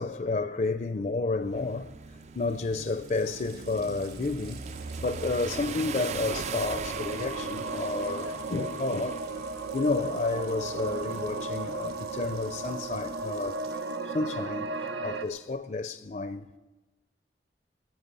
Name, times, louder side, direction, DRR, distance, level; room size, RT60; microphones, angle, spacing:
voice 1, 0.0-1.9 2.4-4.6 5.0-9.5 9.7-13.6 14.1-16.6, left 3 dB, 45° left, 0.5 m, -31 dB
sound 1, 1.4-13.6, right 5 dB, 40° right, 0.4 m, -41 dB
Water tap faucet, 2.0-15.7, right 7 dB, 60° right, 1.6 m, -53 dB
sound 2, 4.5-15.3, right 3 dB, 85° right, 0.9 m, -36 dB
20.5 x 10.0 x 5.4 m
head